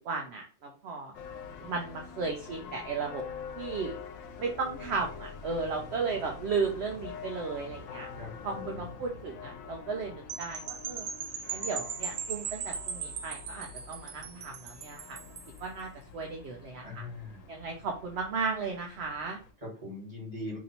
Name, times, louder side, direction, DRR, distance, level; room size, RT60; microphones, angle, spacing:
voice 1, 0.0-1.1 1.6-3.2 3.6-4.0 4.4-8.1 8.4-11.1 11.5-15.2 15.6-16.8 17.5-19.4, right 4 dB, 60° right, 1 dB, 0.8 m, -35 dB
sound 1, 1.1-19.5, left 6 dB, 90° left, 1.0 m, -46 dB
voice 2, 8.1-8.9 16.8-17.4 19.6-20.6, left 2 dB, 25° right, -3 dB, 1.7 m, -41 dB
sound 2, 10.3-15.6, right 7 dB, 85° right, 1.0 m, -38 dB
2.9 x 2.7 x 4.2 m, 0.37 s
omnidirectional pair, 1.3 m